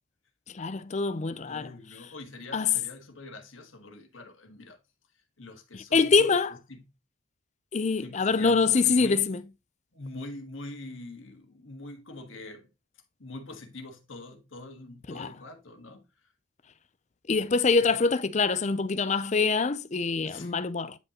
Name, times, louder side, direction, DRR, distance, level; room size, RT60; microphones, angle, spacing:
voice 1, 0.5-1.7 2.5-2.7 5.7-6.5 7.7-9.4 15.1-15.3 17.3-21.0, left 4 dB, 35° left, 0.5 m, -25 dB
voice 2, 1.5-4.8 5.4-6.8 8.0-9.2 9.9-12.7 13.2-16.0 17.8-18.1 20.2-20.6, left 2 dB, 70° left, 1.5 m, -44 dB
9.6 x 5.3 x 2.9 m
head